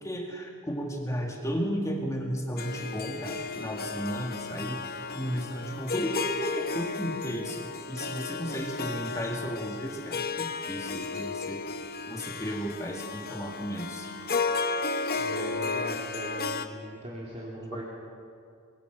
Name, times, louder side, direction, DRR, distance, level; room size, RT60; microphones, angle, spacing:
voice 1, 0.0-7.6 7.9-11.6 12.1-14.1, equal, 15° left, 0 dB, 2.1 m, -34 dB
Harp, 2.6-16.7, left 4 dB, 45° left, 0.9 m, -34 dB
voice 2, 15.1-17.8, right 1 dB, 30° right, -5 dB, 3.1 m, -39 dB
25.0 x 22.0 x 6.2 m, 2.3 s
head